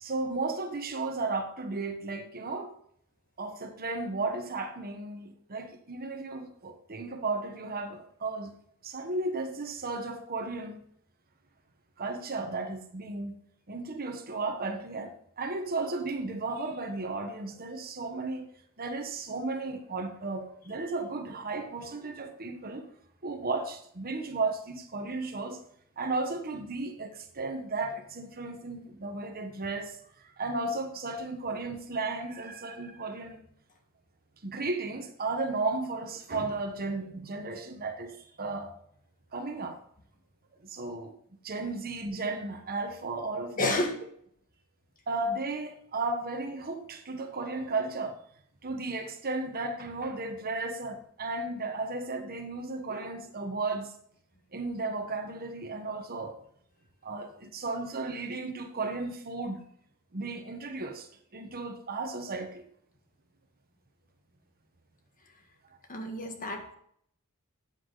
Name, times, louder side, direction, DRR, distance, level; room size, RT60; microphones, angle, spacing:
voice 1, 0.0-2.7 3.4-8.5 8.8-10.8 12.0-13.4 13.7-18.5 18.8-22.9 23.2-25.6 26.0-30.0 30.2-33.4 34.4-38.8 39.3-39.8 40.6-41.2 41.4-43.9 45.1-48.2 48.6-53.9 54.5-56.4 57.0-59.6 60.1-62.6, right 3 dB, 45° right, 1.3 m, -34 dB
voice 2, 43.6-43.9 65.9-66.8, left 2 dB, 40° left, 1.7 m, -30 dB
13.0 x 8.5 x 4.0 m
head